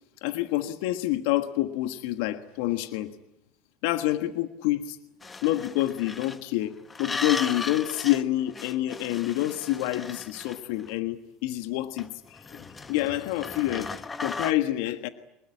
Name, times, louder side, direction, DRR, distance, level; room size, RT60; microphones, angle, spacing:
voice 1, 0.2-3.1 3.8-5.0 5.4-6.7 7.0-15.1, left 15 dB, 70° left, 9 dB, 1.4 m, -28 dB
sound 1, 5.2-6.4 6.9-8.2 8.5-10.9 12.0-14.5, left 4 dB, 20° left, 1.3 m, -37 dB
24.0 x 21.0 x 9.9 m, 0.85 s
hypercardioid pair, 90°, 0 cm